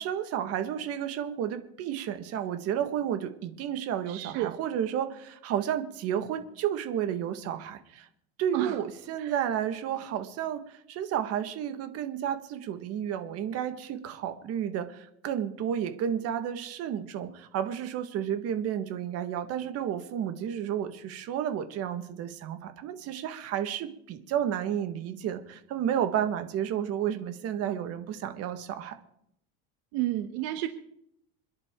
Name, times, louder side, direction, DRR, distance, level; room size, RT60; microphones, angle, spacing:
voice 1, 0.0-8.1 8.4-29.0, right 9 dB, 50° right, 8 dB, 1.7 m, -32 dB
voice 2, 4.1-4.5 8.5-8.8 9.2-9.3 29.9-30.7, right 15 dB, 75° right, 8 dB, 1.2 m, -31 dB
27.0 x 10.5 x 3.8 m, 0.76 s
supercardioid pair, 130°, 30 cm